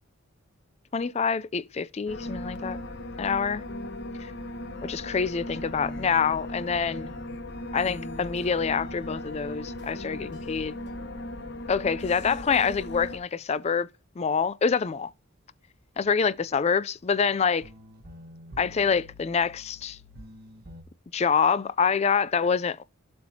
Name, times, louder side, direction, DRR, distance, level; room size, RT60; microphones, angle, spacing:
voice 1, 0.9-2.8 3.2-3.6 4.2-4.3 4.8-7.1 7.7-10.8 11.7-13.9 14.2-15.1 16.0-17.7 18.6-20.0 21.1-22.8, left 6 dB, 30° left, 0.3 m, -26 dB
sound 1, 2.1-13.2, left 1 dB, 55° left, 1.1 m, -37 dB
sound 2, 17.3-17.4 17.6-20.8, left 1 dB, 45° right, 1.4 m, -47 dB
12.0 x 4.3 x 2.8 m
head